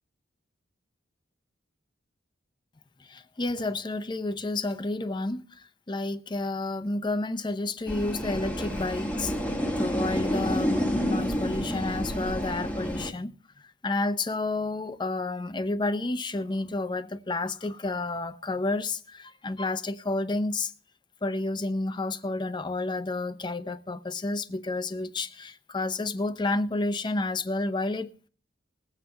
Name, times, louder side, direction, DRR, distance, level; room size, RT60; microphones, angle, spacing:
voice 1, 3.0-9.3 9.8-20.7 21.2-28.3, left 2 dB, 25° left, 0.5 m, -30 dB
sound 1, 7.9-13.1, equal, 5° left, 1.0 m, -29 dB
21.0 x 7.8 x 3.3 m
head